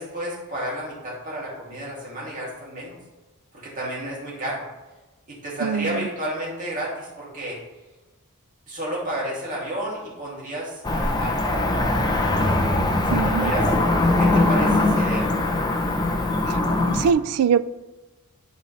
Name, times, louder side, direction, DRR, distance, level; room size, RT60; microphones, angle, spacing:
voice 1, 0.0-3.0 3.5-4.6 5.3-7.6 8.7-12.0 13.0-13.7 14.2-15.3, right 1 dB, 35° right, -5 dB, 2.4 m, -31 dB
voice 2, 5.6-6.1 13.1-13.5 16.5-17.7, right 7 dB, 85° right, 15 dB, 0.3 m, -23 dB
Cricket / Motor vehicle (road), 10.8-17.1, left 2 dB, 20° left, 0.5 m, -21 dB
10.5 x 4.1 x 3.2 m, 1.2 s
head